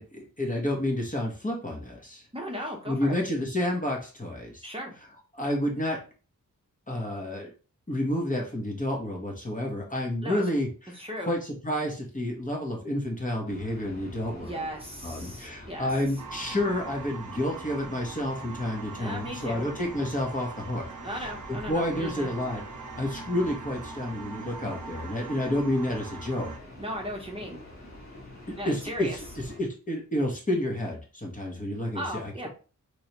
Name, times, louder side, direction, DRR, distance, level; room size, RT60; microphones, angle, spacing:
voice 1, 0.0-2.2 2.9-4.7 5.4-6.0 6.9-7.5 7.9-14.6 15.0-20.9 21.5-22.6 23.0-26.5 28.5-29.2 29.6-32.5, left 1 dB, 25° left, 0 dB, 0.9 m, -30 dB
voice 2, 2.3-3.1 4.6-4.9 10.2-10.4 10.9-11.3 14.4-16.2 19.0-19.6 21.0-22.3 26.8-27.6 28.6-29.2 31.9-32.5, equal, 15° right, -1 dB, 0.8 m, -37 dB
sound 1, 13.5-29.6, left 1 dB, 55° left, 1.5 m, -46 dB
sound 2, 16.2-26.6, right 5 dB, 65° right, 0.6 m, -42 dB
3.1 x 3.1 x 2.9 m, 0.36 s
wide cardioid pair, 90°, 33 cm